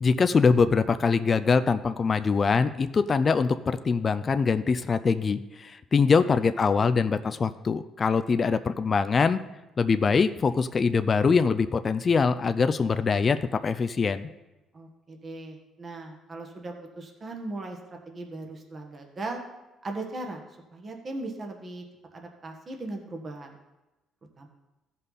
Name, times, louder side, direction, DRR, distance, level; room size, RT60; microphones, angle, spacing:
voice 1, 0.0-9.4 9.8-14.3, left 5 dB, 30° left, 10 dB, 0.4 m, -23 dB
voice 2, 5.9-6.2 7.2-7.4 14.7-19.4 19.8-20.4 20.7-21.8 22.1-23.5 24.4-24.5, right 2 dB, 35° right, 2 dB, 1.4 m, -38 dB
15.5 x 5.5 x 4.0 m, 1.0 s
cardioid pair, 120°, 0 cm